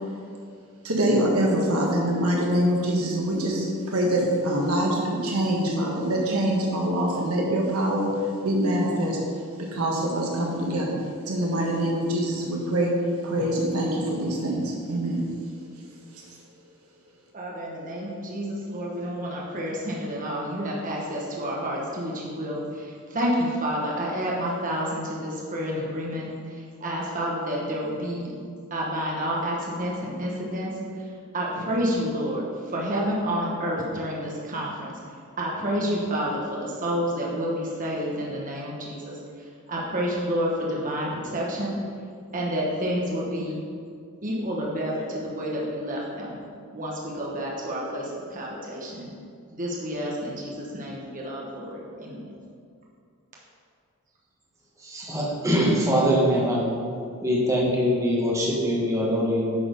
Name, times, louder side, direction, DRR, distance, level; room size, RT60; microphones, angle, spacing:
voice 1, 0.8-9.2 9.6-11.0 11.2-12.9 13.2-15.3 16.1-16.3, right 1 dB, 75° right, -2 dB, 1.3 m, -24 dB
voice 2, 17.3-28.3 28.7-34.9 35.4-41.8 42.3-43.6 44.2-46.3 46.7-49.1 49.5-52.3, equal, 40° right, -4 dB, 1.1 m, -29 dB
voice 3, 54.8-56.7 57.2-59.5, equal, 15° right, -5 dB, 1.3 m, -23 dB
8.5 x 4.3 x 5.2 m, 2.3 s
head